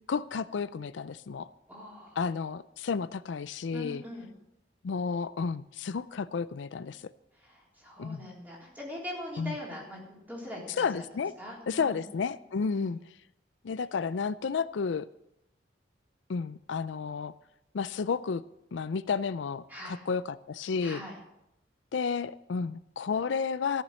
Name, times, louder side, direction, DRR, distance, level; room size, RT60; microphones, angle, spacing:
voice 1, 0.1-1.5 2.2-4.0 4.8-7.1 8.0-8.3 9.4-9.6 10.8-11.3 11.7-13.0 13.6-15.1 16.3-17.3 17.7-18.4 18.7-21.0 21.9-23.8, left 5 dB, 85° left, 16 dB, 0.4 m, -32 dB
voice 2, 1.7-2.2 3.7-4.3 7.4-11.0 11.4-12.0 12.6-13.0 19.7-20.0 20.8-21.2, left 1 dB, 10° right, -4 dB, 3.7 m, -42 dB
14.0 x 7.4 x 7.7 m, 0.86 s
head